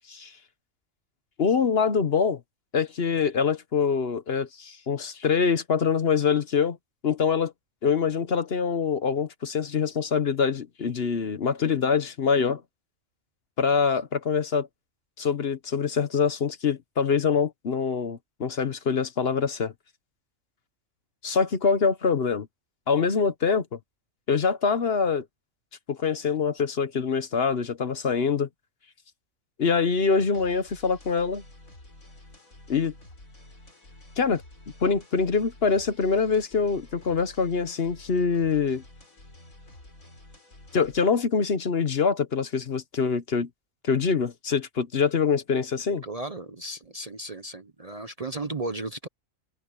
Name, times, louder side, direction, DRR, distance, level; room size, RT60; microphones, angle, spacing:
voice 1, 1.4-2.4 2.7-6.8 7.0-7.5 7.8-12.6 13.6-14.7 15.2-19.7 21.2-22.5 22.9-23.8 24.3-25.2 25.9-28.5 29.6-31.4 32.7-32.9 34.2-34.4 34.8-38.8 40.7-43.5 43.8-46.0, left 5 dB, 50° left, 1.1 m, -24 dB
sound 1, 30.3-41.0, left 1 dB, 90° left, 5.7 m, -50 dB
voice 2, 45.9-49.1, right 2 dB, 35° right, 0.7 m, -35 dB
omnidirectional pair, 1.4 m